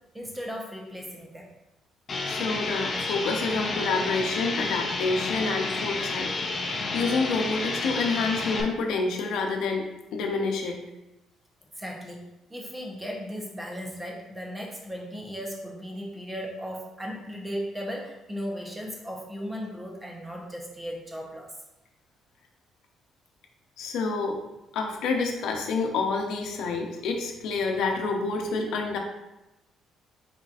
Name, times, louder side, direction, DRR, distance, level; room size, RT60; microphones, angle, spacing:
voice 1, 0.1-1.5 11.7-21.5, equal, 10° right, -1 dB, 0.7 m, -36 dB
sound 1, 2.1-8.6, left 3 dB, 30° left, 0.5 m, -30 dB
voice 2, 2.2-10.8 23.8-24.4 24.7-29.0, left 4 dB, 75° left, 2 dB, 0.8 m, -28 dB
4.4 x 4.1 x 2.5 m, 0.98 s
cardioid pair, 150°, 0 cm